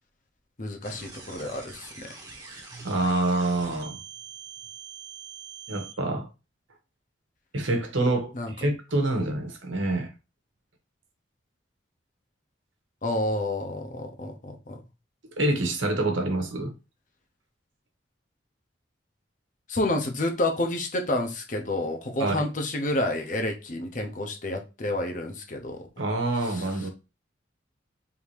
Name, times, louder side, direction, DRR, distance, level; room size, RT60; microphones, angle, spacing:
voice 1, 0.6-2.1 8.3-8.5 9.2-9.3 13.0-14.8 19.7-25.9 26.5-26.6, left 1 dB, 40° left, 0.8 m, -29 dB
sound 1, 0.8-5.9, right 5 dB, 20° right, 1.1 m, -44 dB
voice 2, 2.5-4.0 5.7-6.3 7.5-10.1 15.4-16.7 22.2-22.5 26.0-26.9, right 2 dB, 80° right, 1.2 m, -27 dB
3.6 x 2.8 x 4.7 m
head